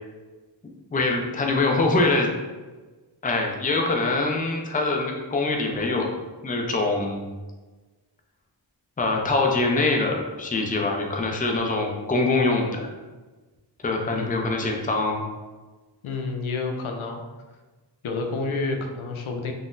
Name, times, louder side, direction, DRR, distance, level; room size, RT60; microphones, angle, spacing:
voice 1, 0.9-2.3 3.2-6.1 6.4-7.3 9.0-12.9 13.8-15.2, left 3 dB, 20° left, 1 dB, 0.4 m, -24 dB
voice 2, 16.0-17.2 18.0-19.5, left 3 dB, 85° left, 3 dB, 0.5 m, -29 dB
3.8 x 2.0 x 2.5 m, 1.3 s
wide cardioid pair, 70°, 47 cm